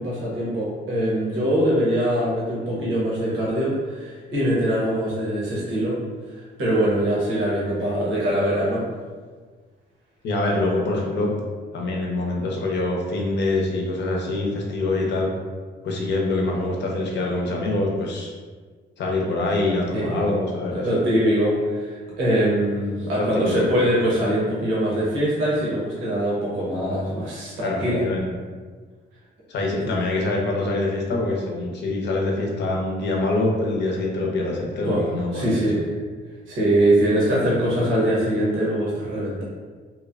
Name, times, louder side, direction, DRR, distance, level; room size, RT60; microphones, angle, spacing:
voice 1, 0.0-6.0 6.3-8.8 19.9-20.1 20.7-28.0 34.8-35.9 36.5-39.4, right 1 dB, 90° right, -6 dB, 0.8 m, -23 dB
voice 2, 10.2-11.4 11.7-15.3 15.8-18.3 19.0-20.9 23.2-23.6 27.6-28.3 29.5-35.7, left 2 dB, 60° left, -1 dB, 0.6 m, -25 dB
2.9 x 2.0 x 2.4 m, 1.5 s
cardioid pair, 90°, 20 cm